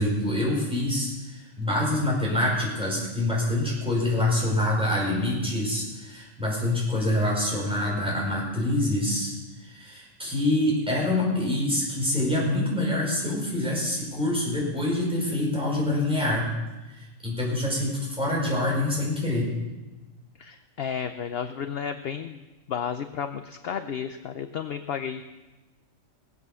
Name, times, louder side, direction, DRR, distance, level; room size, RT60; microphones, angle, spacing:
voice 1, 0.0-9.3 9.6-16.5 16.9-19.5, left 1 dB, 5° right, -4 dB, 5.4 m, -26 dB
voice 2, 20.4-22.4 22.7-25.2, left 7 dB, 55° left, 8 dB, 0.8 m, -32 dB
18.5 x 8.2 x 6.9 m, 1.1 s
omnidirectional pair, 1.4 m